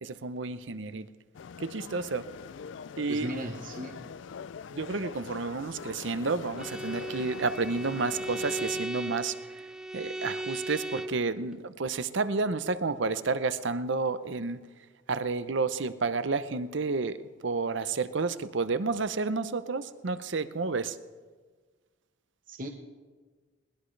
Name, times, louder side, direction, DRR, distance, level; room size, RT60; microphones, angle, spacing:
voice 1, 0.0-1.1 1.6-2.3 3.0-3.3 4.7-9.3 9.9-14.6 15.1-21.0, right 4 dB, 65° right, 13 dB, 0.7 m, -30 dB
sound 1, 1.3-8.9, left 6 dB, 65° left, 0.4 m, -43 dB
voice 2, 3.1-4.1 22.5-22.7, equal, 45° right, 2 dB, 1.0 m, -37 dB
Bowed string instrument, 6.6-11.3, right 2 dB, 5° right, 0.5 m, -36 dB
21.5 x 19.5 x 3.3 m, 1.4 s
head